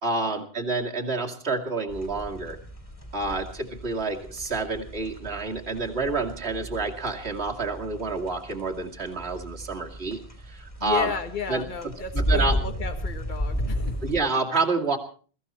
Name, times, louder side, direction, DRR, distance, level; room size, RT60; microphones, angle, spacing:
voice 1, 0.0-2.6 3.1-10.2 10.5-11.1 11.5-11.6 12.1-12.6 14.0-15.0, right 3 dB, 70° right, 1 dB, 2.7 m, -28 dB
sound 1, 1.9-14.2, equal, 30° left, 3.2 m, -33 dB
voice 2, 10.8-13.9, left 6 dB, 50° left, 8 dB, 1.6 m, -33 dB
21.5 x 15.0 x 4.3 m, 0.41 s
omnidirectional pair, 1.1 m